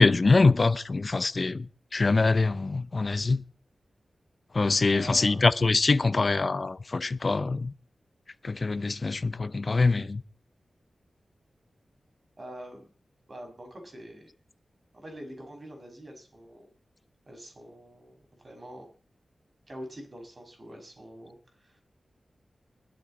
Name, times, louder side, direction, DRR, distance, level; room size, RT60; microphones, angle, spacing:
voice 1, 0.0-3.4 4.5-7.7 8.4-10.2, left 3 dB, 50° left, 0.7 m, -24 dB
voice 2, 4.9-5.5 12.4-12.9 13.3-14.3 14.9-16.7 17.3-18.9 19.7-21.8, right 1 dB, 45° right, 6.0 m, -45 dB
22.0 x 7.8 x 4.2 m
cardioid pair, 45°, 0 cm